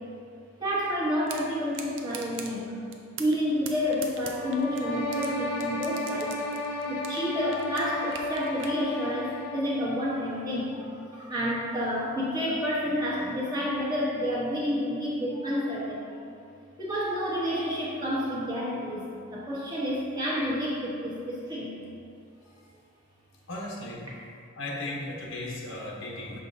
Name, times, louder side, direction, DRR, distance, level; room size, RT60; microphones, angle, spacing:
voice 1, 0.6-2.8 3.2-16.3 16.8-21.7, equal, 20° right, -7 dB, 1.2 m, -30 dB
sound 1, 1.3-1.4 1.7-2.5 2.9-3.4 3.7-5.3 5.6-7.3 7.5-8.8, right 7 dB, 65° right, 0.5 m, -40 dB
sound 2, 4.3-9.7, left 1 dB, 55° left, 0.7 m, -33 dB
voice 2, 23.5-24.1 24.6-26.4, left 2 dB, 75° left, -2 dB, 1.0 m, -36 dB
6.5 x 5.3 x 2.8 m, 2.5 s
head